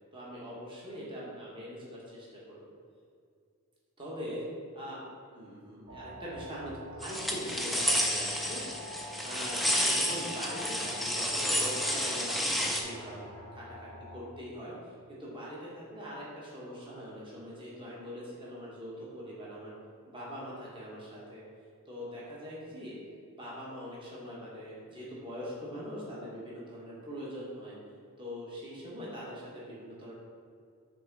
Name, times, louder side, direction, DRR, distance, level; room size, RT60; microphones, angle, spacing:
voice 1, 0.1-2.6 4.0-4.4 4.8-5.0 5.3-8.7 9.2-13.2 13.5-14.7 15.1-19.7 20.1-21.4 21.9-22.9 23.3-27.7 28.2-30.1, equal, 25° right, -7 dB, 1.5 m, -42 dB
sound 1, 5.9-14.2, left 1 dB, 45° right, 1.0 m, -45 dB
sound 2, 7.0-12.8, equal, ahead, 0.4 m, -30 dB
6.0 x 3.8 x 4.8 m, 2.3 s
head